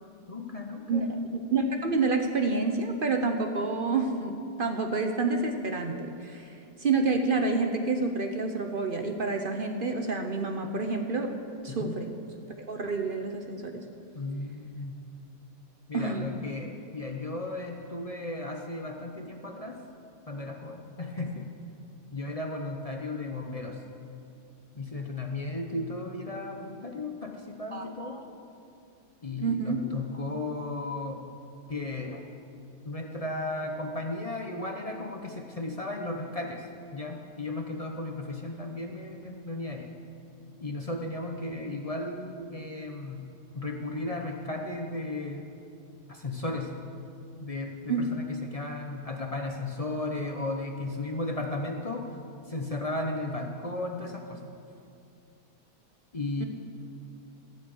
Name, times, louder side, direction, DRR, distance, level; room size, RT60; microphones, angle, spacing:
voice 1, 0.3-1.1 11.7-12.0 14.1-15.0 15.9-19.8 20.3-21.5 22.1-23.8 24.7-28.2 29.2-31.3 31.7-32.2 32.8-36.7 36.9-39.9 40.6-45.5 46.1-46.7 47.4-52.1 52.5-54.5 56.1-56.4, left 2 dB, 35° left, 2 dB, 0.6 m, -35 dB
voice 2, 0.9-1.2 1.5-11.4 11.6-12.1 12.6-13.8 15.9-16.3 27.7-28.2 29.4-29.9 47.9-48.1 56.4-56.5, right 3 dB, 45° right, 5 dB, 0.7 m, -28 dB
14.5 x 7.5 x 7.8 m, 2.5 s
omnidirectional pair, 1.7 m